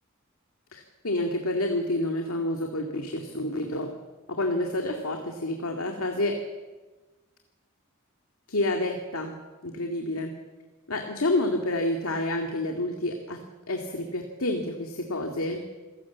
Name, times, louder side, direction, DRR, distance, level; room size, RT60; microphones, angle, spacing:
voice 1, 0.7-3.9 4.3-6.4 8.5-9.3 9.6-10.3 10.9-13.4 13.7-15.6, left 1 dB, 85° left, 3 dB, 2.2 m, -29 dB
27.0 x 16.5 x 7.3 m, 1.3 s
head